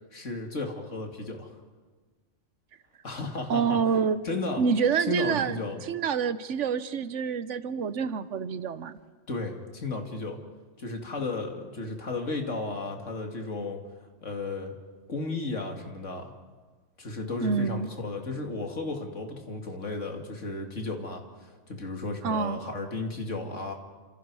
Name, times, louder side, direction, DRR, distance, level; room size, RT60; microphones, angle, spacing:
voice 1, 0.1-1.5 3.0-3.8 4.2-4.6 5.1-5.8 9.3-10.4 10.8-13.8 14.2-14.7 15.1-16.3 17.0-23.7, left 3 dB, 75° left, 3 dB, 2.7 m, -34 dB
voice 2, 3.5-4.2 4.6-5.6 5.9-8.9 17.4-17.9 22.2-22.6, right 6 dB, 75° right, 14 dB, 1.2 m, -27 dB
29.0 x 26.5 x 4.8 m, 1.4 s
omnidirectional pair, 1.3 m